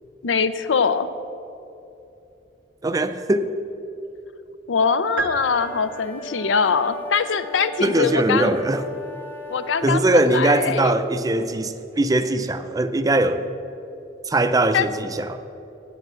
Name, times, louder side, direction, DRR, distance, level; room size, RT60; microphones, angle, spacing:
voice 1, 0.2-1.1 4.7-8.6 9.5-10.9 14.7-14.9, left 5 dB, 85° left, 12 dB, 0.5 m, -22 dB
voice 2, 2.8-3.5 7.8-8.8 9.8-13.4 14.3-15.4, right 2 dB, 20° right, 11 dB, 0.4 m, -21 dB
sound 1, 5.2-6.5, right 3 dB, 80° right, 0.6 m, -31 dB
sound 2, 5.5-10.0, left 1 dB, 10° left, 0.9 m, -38 dB
8.4 x 7.8 x 7.5 m, 2.8 s
head